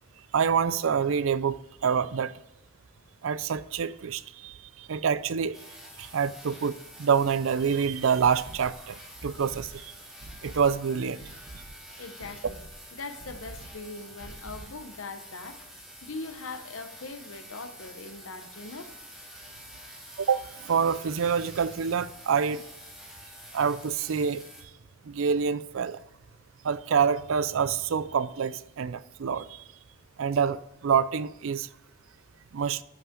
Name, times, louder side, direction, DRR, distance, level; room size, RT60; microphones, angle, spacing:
voice 1, 0.3-2.3 3.2-5.6 6.0-9.0 9.2-9.9 10.4-11.2 20.2-22.6 23.5-24.4 25.1-26.0 26.6-29.6 30.2-31.7 32.5-32.8, right 6 dB, 70° right, 0.4 m, -27 dB
sound 1, 5.5-24.6, equal, ahead, 1.7 m, -48 dB
sound 2, 8.0-15.7 16.0-16.1 16.5-16.6, right 2 dB, 50° right, 1.0 m, -47 dB
voice 2, 12.0-12.6 12.9-18.9, left 3 dB, 70° left, 0.9 m, -41 dB
12.5 x 5.7 x 3.7 m
head